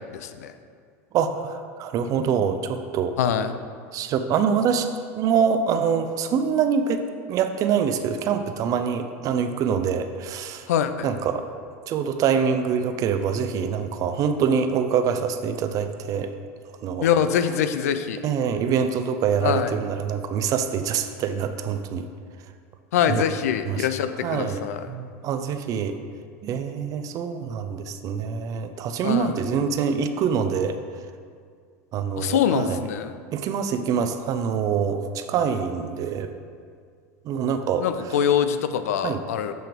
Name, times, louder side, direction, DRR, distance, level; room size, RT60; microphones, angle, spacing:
voice 1, 0.1-0.5 3.2-3.5 10.7-11.1 17.0-18.2 19.4-19.7 22.9-24.8 29.0-29.3 32.2-33.1 37.8-39.5, left 8 dB, 85° left, 10 dB, 0.4 m, -24 dB
voice 2, 1.1-3.2 3.9-4.9 5.2-7.0 7.3-10.7 11.0-11.4 11.9-16.3 16.8-17.1 18.2-22.1 23.1-23.2 23.6-23.9 24.2-24.6 24.9-26.0 26.4-30.8 31.9-32.8 33.3-36.3 37.3-37.9 39.0-39.2, right 7 dB, 45° right, 9 dB, 0.5 m, -25 dB
7.8 x 3.3 x 4.5 m, 2.1 s
hypercardioid pair, 100°, 8 cm